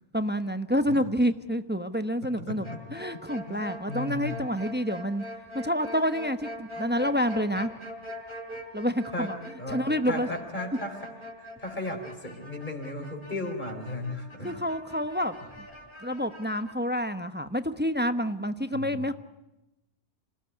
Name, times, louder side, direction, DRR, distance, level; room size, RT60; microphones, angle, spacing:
voice 1, 0.1-2.7 2.9-5.2 5.5-7.7 8.7-9.3 9.7-10.3 14.4-15.4 16.0-19.1, equal, 10° right, 9 dB, 1.0 m, -28 dB
voice 2, 2.5-2.8 3.5-4.3 9.1-9.3 9.6-11.1 11.4-14.6 18.7-19.0, left 1 dB, 40° left, 4 dB, 4.8 m, -36 dB
sound 1, 2.6-16.7, equal, 25° left, 4.9 m, -43 dB
27.5 x 18.5 x 9.6 m, 0.97 s
omnidirectional pair, 1.2 m